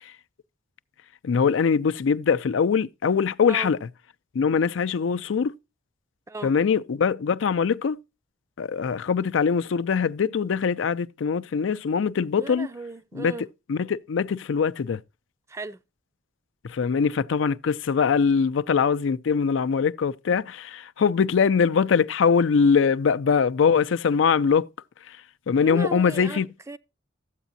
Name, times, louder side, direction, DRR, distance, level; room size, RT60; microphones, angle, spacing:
voice 1, 1.2-3.8 4.3-5.5 6.4-8.0 8.6-12.7 13.1-13.3 13.7-15.0 16.6-24.7 25.1-25.2 25.5-26.5, left 6 dB, 80° left, 0.4 m, -22 dB
voice 2, 12.4-13.5 15.5-15.8 25.6-26.4 26.7-26.8, right 2 dB, 15° right, 0.4 m, -35 dB
13.0 x 8.1 x 2.6 m
head